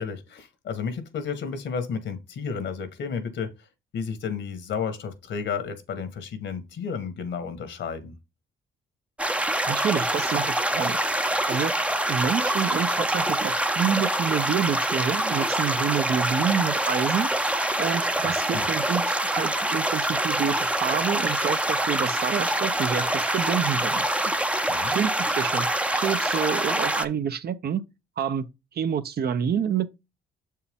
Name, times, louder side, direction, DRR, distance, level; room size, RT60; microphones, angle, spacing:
voice 1, 0.0-3.7 3.9-8.2 18.5-18.6 24.6-25.0, left 6 dB, 65° left, 1.5 m, -32 dB
sound 1, 9.2-27.0, right 1 dB, 5° right, 0.6 m, -25 dB
voice 2, 9.7-11.0 11.5-24.1 24.9-27.8 28.2-28.5 28.7-29.9, right 8 dB, 55° right, 0.8 m, -28 dB
7.0 x 4.6 x 3.6 m
cardioid pair, 90°, 20 cm